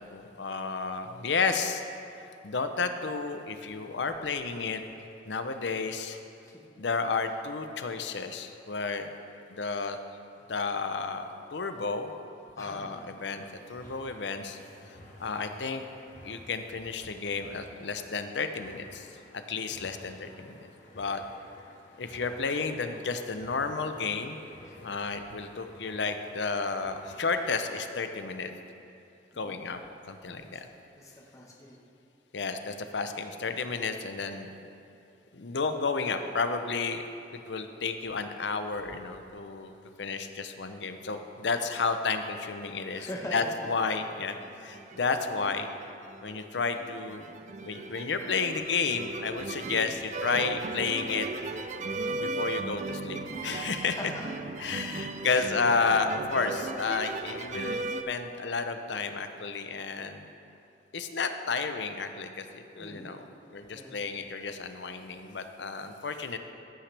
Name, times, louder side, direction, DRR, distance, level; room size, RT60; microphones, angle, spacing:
voice 1, 0.1-1.8 2.4-4.8 5.3-6.2 6.8-9.1 9.5-10.0 10.5-12.1 12.6-14.6 14.9-15.0 15.2-15.8 16.2-19.1 19.3-20.6 20.9-21.2 22.0-24.4 24.8-28.5 29.4-29.8 30.1-30.7 32.3-34.5 35.3-37.0 37.5-39.7 40.0-45.7 46.2-47.2 47.6-51.3 52.2-54.1 54.6-57.8 58.1-60.3 60.9-63.2 63.5-66.4, left 4 dB, 75° left, 8 dB, 0.7 m, -32 dB
voice 2, 12.6-13.1 24.6-24.9 29.3-29.6 30.6-31.7 42.9-43.7 53.9-54.3 55.2-55.5 62.8-63.1 63.7-64.0, equal, 20° left, -3 dB, 1.1 m, -42 dB
sound 1, 13.4-27.7, left 1 dB, 45° left, 1.4 m, -53 dB
sound 2, 43.3-44.1 44.5-58.0, right 3 dB, 40° right, 0.5 m, -37 dB
15.0 x 8.9 x 3.4 m, 2.9 s
head